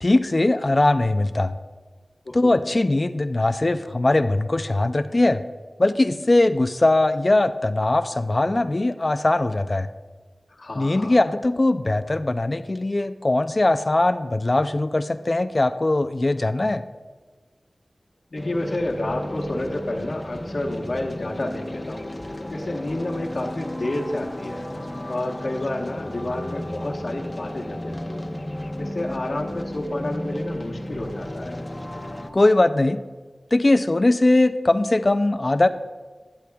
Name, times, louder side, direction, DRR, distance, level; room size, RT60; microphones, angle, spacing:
voice 1, 0.0-1.5 2.3-5.4 5.8-9.9 10.8-16.8 32.3-33.0 33.5-35.7, left 2 dB, 45° left, 11 dB, 0.3 m, -20 dB
voice 2, 2.2-2.6 10.5-11.2 18.3-24.7 25.1-28.3 28.8-31.7, left 1 dB, 70° left, 0 dB, 1.1 m, -30 dB
sound 1, 18.4-32.3, left 1 dB, 30° left, 0.7 m, -34 dB
12.0 x 11.0 x 2.3 m, 1.4 s
wide cardioid pair, 60°, 0 cm